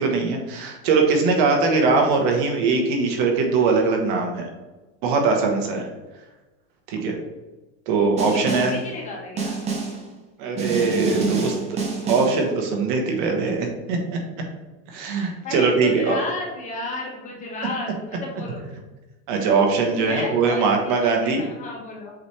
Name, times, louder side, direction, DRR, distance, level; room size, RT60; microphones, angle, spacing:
voice 1, 0.0-4.5 5.0-5.9 6.9-7.2 7.9-8.7 10.4-14.0 14.9-16.2 19.3-21.4, right 4 dB, 50° right, 2 dB, 1.3 m, -21 dB
voice 2, 8.2-9.6 15.4-17.9 18.2-18.6 20.0-22.1, left 2 dB, 25° left, -2 dB, 1.4 m, -33 dB
Snare drum, 8.2-8.8 9.4-10.0 10.6-12.4, right 4 dB, 20° right, 0.9 m, -27 dB
7.9 x 3.3 x 4.3 m, 1.1 s
supercardioid pair, 170°, 32 cm